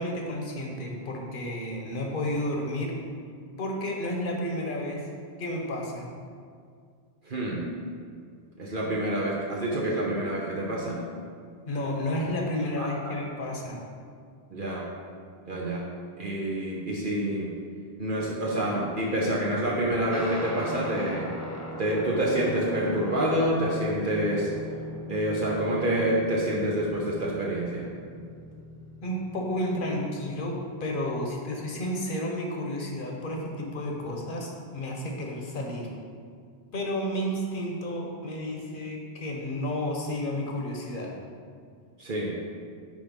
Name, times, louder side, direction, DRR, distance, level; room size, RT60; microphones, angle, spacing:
voice 1, 0.0-2.9 3.6-5.0 5.4-6.1 11.7-13.8 29.0-35.9 36.7-41.1, left 1 dB, 55° left, 0 dB, 1.2 m, -31 dB
voice 2, 7.3-7.7 8.6-11.0 12.8-13.2 14.5-14.9 15.5-15.9 16.2-17.5 18.0-21.3 21.8-24.5 25.1-27.9 42.0-42.4, right 1 dB, 55° right, -4 dB, 1.0 m, -27 dB
Guitar, 20.1-29.9, left 2 dB, 15° left, 0.9 m, -40 dB
8.8 x 3.4 x 5.3 m, 2.1 s
omnidirectional pair, 1.1 m